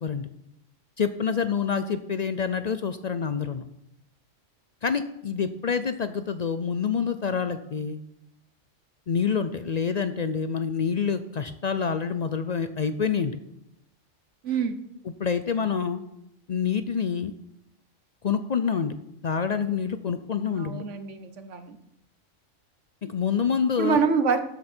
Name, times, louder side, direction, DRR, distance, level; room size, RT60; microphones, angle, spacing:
voice 1, 1.0-3.6 4.8-8.0 9.1-13.4 15.2-16.0 16.5-17.3 18.2-18.9 19.2-20.8 23.0-24.0, left 6 dB, 55° left, 10 dB, 0.4 m, -27 dB
voice 2, 14.4-14.8 20.5-21.8 23.8-24.4, right 5 dB, 70° right, 9 dB, 1.3 m, -25 dB
13.0 x 8.2 x 4.4 m, 0.83 s
omnidirectional pair, 1.3 m